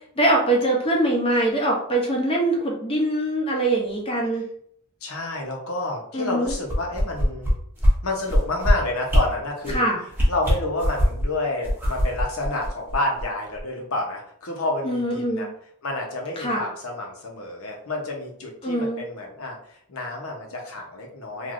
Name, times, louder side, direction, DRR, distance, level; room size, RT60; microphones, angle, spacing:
voice 1, 0.2-4.4 6.1-6.5 9.7-10.0 14.8-15.5 16.4-16.6 18.6-19.0, right 1 dB, 25° left, 0 dB, 0.6 m, -23 dB
voice 2, 5.0-7.5 8.0-9.9 10.3-15.5 15.8-21.5, left 2 dB, 75° left, 0 dB, 0.8 m, -29 dB
sound 1, 6.4-7.5 7.8-7.9 8.2-8.7 9.1-9.2 9.6-9.8 10.1-11.2 11.6-13.2 13.6-13.7, equal, 10° right, 0.7 m, -21 dB
3.2 x 2.5 x 2.5 m, 0.65 s
head